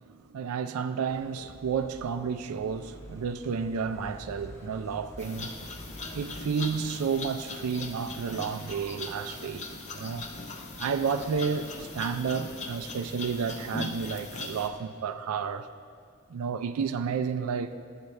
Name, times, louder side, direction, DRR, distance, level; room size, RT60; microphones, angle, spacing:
voice 1, 0.1-5.5 6.1-9.6 9.9-10.3 10.8-15.7 16.3-17.7, right 6 dB, 90° right, 0.4 m, -31 dB
sound 1, 1.1-6.4, equal, 15° left, 1.0 m, -48 dB
sound 2, 5.2-14.7, left 2 dB, 35° left, 0.6 m, -40 dB
11.5 x 7.9 x 3.3 m
head